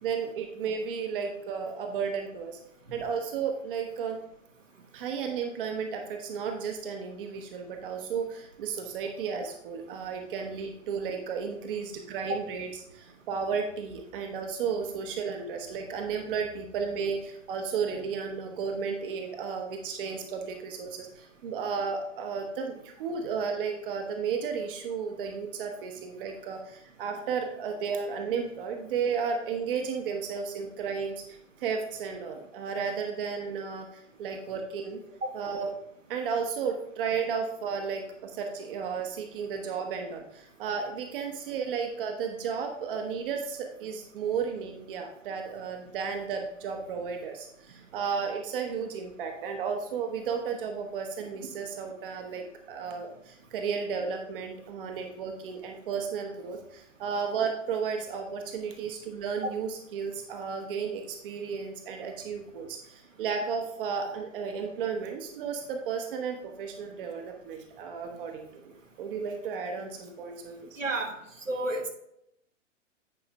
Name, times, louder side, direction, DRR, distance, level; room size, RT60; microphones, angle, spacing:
voice 1, 0.0-2.6 2.9-4.2 4.9-35.0 35.3-35.7 36.1-68.7 69.0-70.8, right 6 dB, 45° right, 4 dB, 1.0 m, -33 dB
voice 2, 70.8-71.1 71.5-71.9, right 2 dB, 85° right, 1 dB, 1.5 m, -30 dB
9.6 x 4.8 x 3.4 m, 0.76 s
figure-of-eight pair, 110°, 37 cm